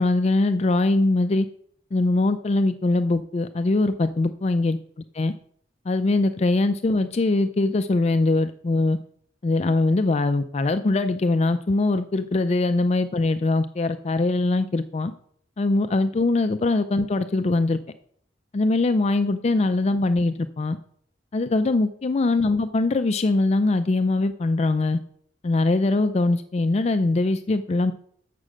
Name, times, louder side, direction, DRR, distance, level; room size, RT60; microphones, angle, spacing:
voice 1, 0.0-1.5 1.9-4.8 5.1-5.3 5.9-9.0 9.4-15.1 15.6-17.8 18.5-20.8 21.3-25.0 25.4-27.9, left 2 dB, 35° left, 10 dB, 0.4 m, -22 dB
7.5 x 6.1 x 6.4 m, 0.62 s
head